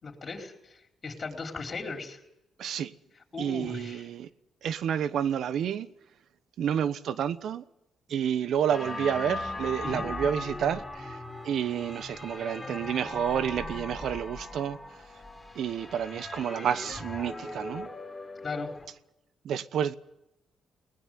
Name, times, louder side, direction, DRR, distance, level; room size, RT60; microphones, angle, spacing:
voice 1, 0.0-2.2 3.3-4.1 9.8-10.1 18.4-18.8, left 4 dB, 35° left, 4.6 m, -37 dB
voice 2, 2.6-2.9 3.4-4.3 4.6-5.9 6.6-7.6 8.1-11.2 11.4-14.8 15.5-17.9 19.4-19.9, right 9 dB, 70° right, 1.0 m, -29 dB
sound 1, 8.7-18.9, left 2 dB, 15° left, 3.8 m, -39 dB
19.5 x 18.5 x 9.3 m
cardioid pair, 90°, 0 cm